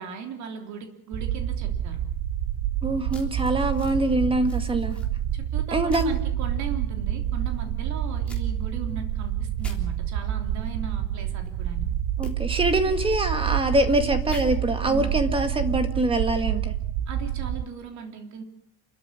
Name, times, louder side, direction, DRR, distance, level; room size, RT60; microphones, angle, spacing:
voice 1, 0.0-2.0 4.7-4.8 5.3-11.9 14.9-15.1 17.1-18.4, right 6 dB, 50° right, 4 dB, 3.4 m, -38 dB
sound 1, 1.1-17.6, right 10 dB, 80° right, 1.4 m, -28 dB
voice 2, 2.8-5.0 5.7-6.1 12.2-16.7, right 1 dB, 15° right, 8 dB, 2.0 m, -24 dB
sound 2, 3.1-4.0 4.4-5.1 5.9-6.2 8.3-8.4 9.6-9.8 12.2-12.3 14.3-14.5, left 2 dB, 5° left, 3.4 m, -44 dB
28.5 x 13.5 x 9.7 m, 0.71 s
cardioid pair, 180°, 36 cm